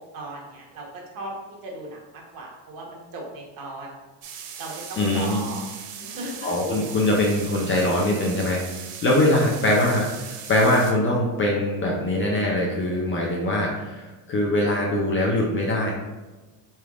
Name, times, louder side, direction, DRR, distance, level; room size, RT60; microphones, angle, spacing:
voice 1, 0.1-3.9 4.6-5.6 6.0-6.5, right 2 dB, 45° right, -2 dB, 1.1 m, -37 dB
sound 1, 4.2-10.9, right 7 dB, 85° right, 0.7 m, -39 dB
voice 2, 5.0-5.4 6.4-15.9, left 1 dB, 25° left, -2 dB, 0.5 m, -22 dB
4.0 x 3.4 x 2.4 m, 1.2 s
cardioid pair, 135°, 48 cm